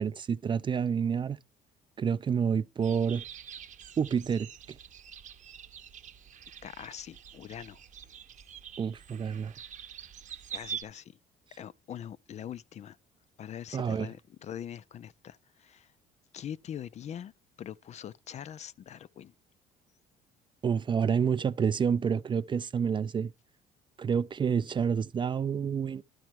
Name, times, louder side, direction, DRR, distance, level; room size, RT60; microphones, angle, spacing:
voice 1, 0.0-1.4 2.0-3.2 4.0-4.8 8.8-9.5 13.7-14.1 20.6-23.3 24.0-26.0, right 7 dB, 30° right, 0.4 m, -28 dB
sound 1, 2.8-10.8, right 8 dB, 45° right, 0.8 m, -45 dB
voice 2, 6.6-7.8 10.5-11.1 11.5-13.0 13.4-15.9 16.3-17.3 17.6-19.3, left 9 dB, 40° left, 0.4 m, -43 dB
12.0 x 4.4 x 4.6 m
cardioid pair, 110°, 17 cm